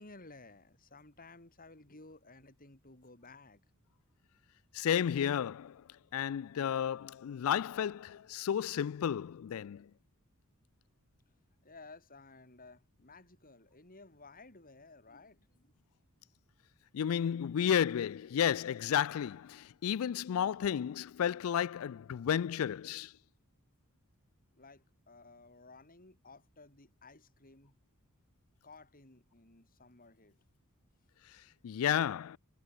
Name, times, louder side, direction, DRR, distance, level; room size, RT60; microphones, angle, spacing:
voice 1, 0.0-3.6 11.6-15.7 24.6-27.8 28.6-30.4, left 3 dB, 40° left, 4.4 m, -56 dB
voice 2, 4.7-5.8 6.1-9.9 16.9-23.1 31.6-32.4, left 9 dB, 65° left, 0.3 m, -32 dB
head